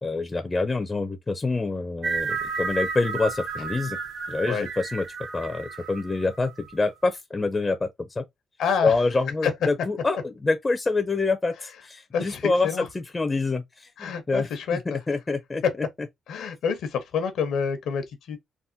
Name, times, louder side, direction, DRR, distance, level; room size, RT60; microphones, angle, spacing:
voice 1, 0.0-4.0 4.3-5.0 5.3-7.9 8.2-8.3 8.8-14.8 15.1-15.6, left 3 dB, 25° left, 0.4 m, -26 dB
sound 1, 2.0-6.7, right 4 dB, 65° right, 0.6 m, -32 dB
voice 2, 8.6-8.9 9.4-9.5 12.1-12.9 14.0-15.0 15.6-15.7 16.3-18.4, left 6 dB, 85° left, 0.8 m, -27 dB
3.5 x 2.1 x 2.6 m
cardioid pair, 95°, 0 cm